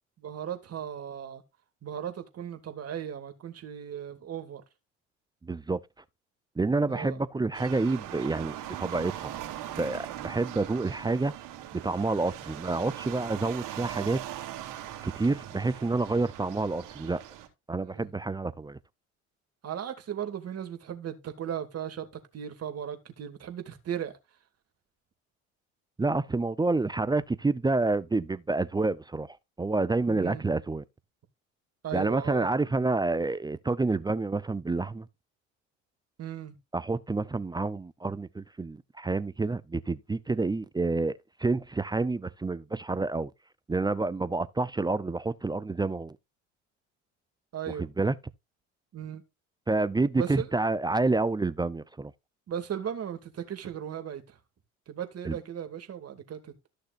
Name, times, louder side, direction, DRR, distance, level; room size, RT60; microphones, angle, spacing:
voice 1, 0.2-1.4 1.8-4.6 6.9-7.2 17.8-18.1 19.6-22.1 22.3-24.1 30.1-30.5 31.8-32.5 36.2-36.5 47.5-47.9 48.9-49.2 50.2-50.5 52.5-54.4 54.9-56.7, right 9 dB, 45° right, 2.6 m, -37 dB
voice 2, 5.4-5.8 6.6-9.3 9.7-11.3 11.7-14.2 15.0-17.2 17.7-18.8 26.0-30.8 31.9-35.1 36.7-43.3 43.7-46.2 47.8-48.1 49.7-52.1 55.2-55.4, right 3 dB, 10° right, 0.6 m, -28 dB
sound 1, 7.5-17.5, right 13 dB, 60° right, 3.0 m, -40 dB
14.0 x 6.5 x 2.6 m
hypercardioid pair, 70°, 36 cm